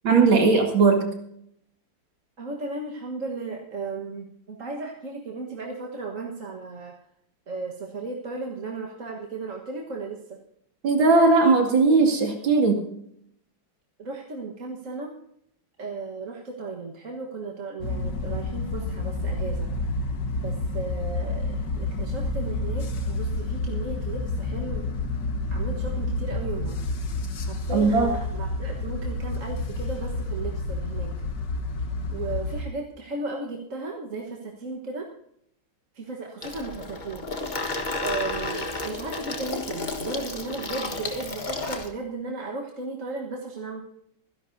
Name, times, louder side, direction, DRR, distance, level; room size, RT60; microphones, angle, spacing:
voice 1, 0.0-1.0 10.8-12.8 27.7-28.1, right 4 dB, 80° right, 2 dB, 3.1 m, -18 dB
voice 2, 2.4-6.9 7.5-10.4 14.0-15.1 15.8-19.7 20.4-24.9 25.5-26.8 27.4-31.1 32.1-35.1 35.9-37.3 37.7-43.8, right 3 dB, 45° right, 0 dB, 1.7 m, -35 dB
sound 1, 17.8-32.6, left 2 dB, 65° left, 1.9 m, -29 dB
Water tap faucet / Sink (filling or washing), 36.4-41.9, left 3 dB, 25° left, 1.3 m, -32 dB
25.5 x 11.0 x 2.7 m, 0.72 s
omnidirectional pair, 2.1 m